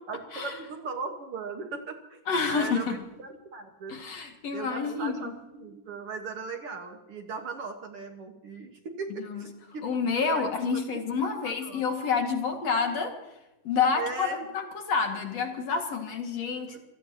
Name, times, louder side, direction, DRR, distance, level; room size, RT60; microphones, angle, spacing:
voice 1, 0.1-2.2 2.5-4.0 4.5-9.9 10.3-11.0 11.6-11.8 13.9-14.5, right 4 dB, 55° right, 4 dB, 2.1 m, -38 dB
voice 2, 2.3-3.0 3.9-5.3 9.1-9.5 9.8-13.1 13.6-16.8, left 5 dB, 55° left, 3 dB, 3.1 m, -28 dB
28.0 x 17.5 x 2.9 m, 0.97 s
omnidirectional pair, 3.6 m